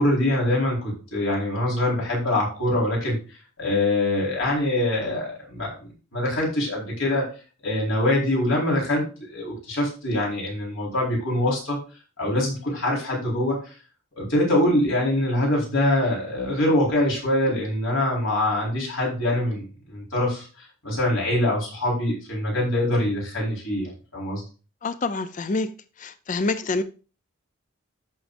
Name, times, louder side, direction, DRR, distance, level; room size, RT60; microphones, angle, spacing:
voice 1, 0.0-7.3 7.6-11.8 12.2-13.7 14.2-24.4, left 1 dB, 65° left, 4.6 m, -24 dB
voice 2, 24.8-25.7 26.0-26.8, left 3 dB, 35° left, 0.4 m, -26 dB
14.0 x 6.1 x 2.6 m
head